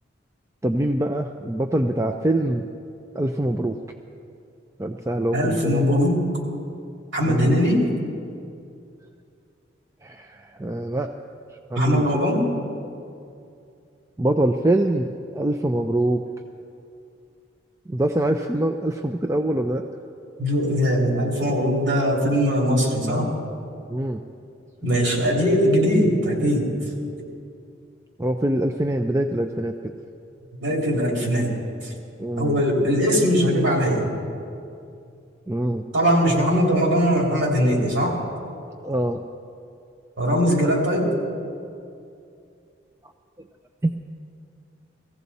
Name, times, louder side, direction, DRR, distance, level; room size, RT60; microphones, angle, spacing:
voice 1, 0.6-2.7 3.1-3.8 4.8-6.0 7.2-7.6 10.0-11.1 11.7-12.2 14.2-16.2 17.9-19.9 23.9-24.2 28.2-29.9 32.2-32.6 35.5-35.8 38.8-39.2 43.8-43.9, right 1 dB, 15° right, 5 dB, 0.4 m, -24 dB
voice 2, 5.3-6.3 7.1-7.8 11.7-12.4 20.4-23.3 24.8-26.7 30.6-31.9 32.4-34.1 35.9-38.2 40.2-41.1, equal, 75° right, -2 dB, 3.0 m, -20 dB
18.0 x 15.5 x 4.1 m, 2.5 s
head